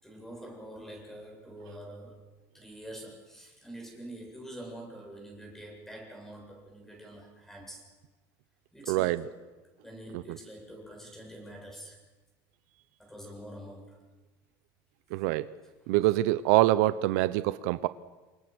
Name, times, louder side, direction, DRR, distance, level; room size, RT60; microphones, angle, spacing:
voice 1, 0.0-2.3 2.5-7.9 8.7-9.4 9.8-12.0 13.0-14.0, right 1 dB, 5° left, 1 dB, 7.9 m, -46 dB
voice 2, 8.9-9.2 10.1-10.2 15.1-15.5 15.9-17.9, right 17 dB, 75° right, 14 dB, 0.9 m, -25 dB
28.5 x 24.5 x 6.3 m, 1.2 s
cardioid pair, 145°, 9 cm